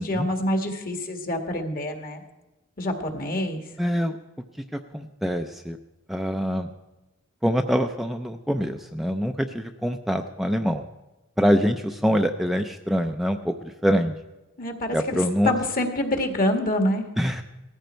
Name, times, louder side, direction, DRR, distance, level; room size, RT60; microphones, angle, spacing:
voice 1, 0.0-2.2 2.8-3.6 14.6-17.0, left 1 dB, 45° left, 5 dB, 1.9 m, -26 dB
voice 2, 3.8-4.2 4.9-5.8 6.1-6.7 7.4-10.9 11.4-14.1 14.9-15.5 17.2-17.4, equal, ahead, 4 dB, 0.5 m, -24 dB
17.5 x 14.5 x 4.5 m, 1.1 s
head